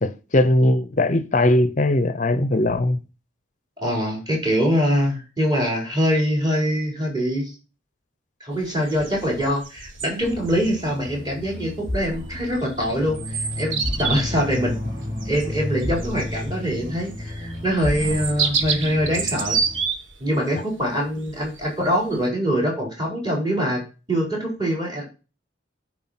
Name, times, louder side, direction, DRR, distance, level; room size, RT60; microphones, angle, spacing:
voice 1, 0.0-3.0, left 1 dB, 40° left, 0.6 m, -19 dB
voice 2, 3.8-7.5 8.4-14.8 15.2-19.6 20.2-23.8 24.1-25.0, equal, 20° right, 4.5 m, -24 dB
sound 1, 8.5-22.2, right 5 dB, 85° right, 1.4 m, -30 dB
sound 2, 10.2-19.8, left 1 dB, 60° right, 3.9 m, -32 dB
9.6 x 4.7 x 5.8 m
head